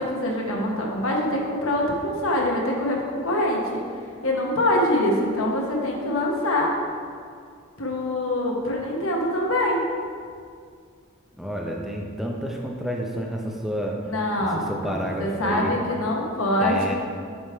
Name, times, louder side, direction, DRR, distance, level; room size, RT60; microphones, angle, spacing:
voice 1, 0.0-3.8 4.2-6.7 7.8-9.8 14.1-16.8, left 1 dB, 85° left, -1 dB, 1.0 m, -24 dB
voice 2, 11.4-14.0 14.4-15.7 16.6-16.9, equal, ahead, -1 dB, 0.5 m, -30 dB
7.3 x 3.5 x 4.4 m, 2.2 s
head